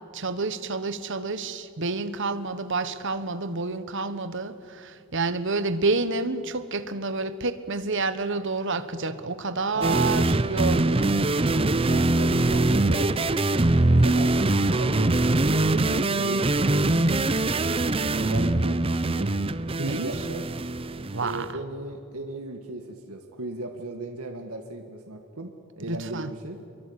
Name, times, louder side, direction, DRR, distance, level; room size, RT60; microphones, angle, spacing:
voice 1, 0.1-11.2 19.8-20.1 21.1-21.4 25.9-26.3, right 3 dB, 60° right, 12 dB, 1.2 m, -29 dB
sound 1, 9.8-21.3, right 2 dB, 25° right, 0.7 m, -23 dB
voice 2, 11.9-13.7 14.0-14.4 14.7-15.2 15.5-17.3 17.8-19.3 19.7-20.5 21.2-25.5 25.8-26.6, right 2 dB, 85° right, 4 dB, 1.7 m, -36 dB
26.5 x 23.5 x 8.6 m, 2.5 s
head